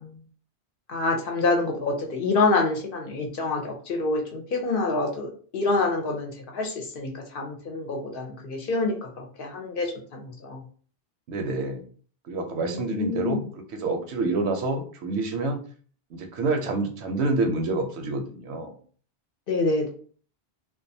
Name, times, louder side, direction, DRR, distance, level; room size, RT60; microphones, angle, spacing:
voice 1, 0.9-10.6 12.6-13.4 19.5-19.9, left 3 dB, 60° left, 2 dB, 0.7 m, -27 dB
voice 2, 11.3-11.8 12.3-15.6 16.1-18.8, right 3 dB, 80° right, 5 dB, 0.8 m, -28 dB
2.3 x 2.2 x 2.6 m, 0.44 s
omnidirectional pair, 1.1 m